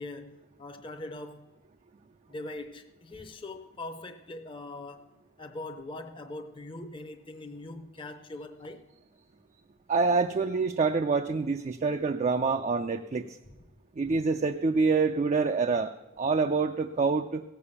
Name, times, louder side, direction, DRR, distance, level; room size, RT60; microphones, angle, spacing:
voice 1, 0.0-1.5 2.3-5.0 5.4-8.8, left 2 dB, 25° left, 0.6 m, -41 dB
voice 2, 9.9-13.4 14.0-17.4, right 4 dB, 35° right, 0.4 m, -26 dB
16.5 x 6.9 x 7.0 m
head